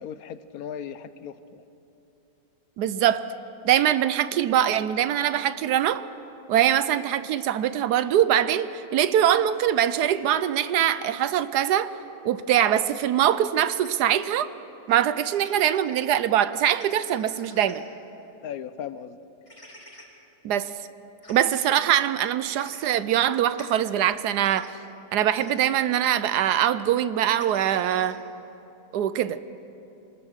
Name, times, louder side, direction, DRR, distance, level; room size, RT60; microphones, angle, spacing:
voice 1, 0.0-1.6 18.4-19.2, left 8 dB, 65° left, 13 dB, 1.1 m, -37 dB
voice 2, 2.8-3.3 3.6-6.1 6.5-12.0 12.2-14.5 14.9-17.8 20.4-20.7 21.3-24.7 25.1-28.2 28.9-29.4, right 10 dB, 75° right, 14 dB, 1.2 m, -23 dB
sound 1, 13.8-13.9 15.3-16.0 16.7-17.8 19.5-20.0 21.2-21.7 22.6-22.9 23.5-23.6 24.4-24.7 25.3-25.6 27.4-28.2, left 1 dB, 20° left, 2.9 m, -47 dB
24.5 x 19.0 x 6.5 m, 2.9 s
omnidirectional pair, 1.8 m